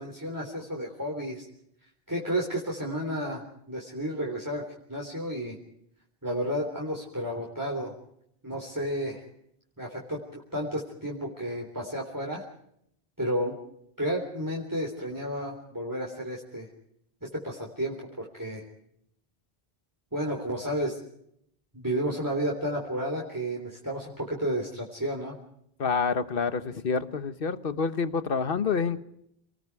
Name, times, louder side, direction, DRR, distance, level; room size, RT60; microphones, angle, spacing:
voice 1, 0.0-1.5 2.1-4.6 4.9-5.5 6.2-7.9 8.4-9.2 9.8-12.4 13.2-13.5 14.0-16.7 17.2-18.6 20.1-21.0 21.7-25.4, equal, 20° right, -1 dB, 3.6 m, -32 dB
voice 2, 25.8-29.0, left 5 dB, 60° left, 11 dB, 1.4 m, -28 dB
30.0 x 20.0 x 4.8 m, 0.74 s
omnidirectional pair, 1.0 m